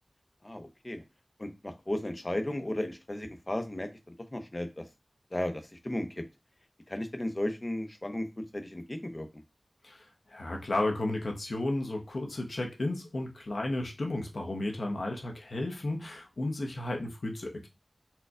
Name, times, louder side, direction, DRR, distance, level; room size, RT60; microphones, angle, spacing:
voice 1, 0.4-1.0 1.4-3.9 4.3-4.9 5.3-6.2 6.9-8.3 8.5-9.3, left 1 dB, 30° left, 0.6 m, -34 dB
voice 2, 9.8-17.7, left 2 dB, 85° left, 0.8 m, -33 dB
4.2 x 2.2 x 2.4 m
wide cardioid pair, 60°, 0 cm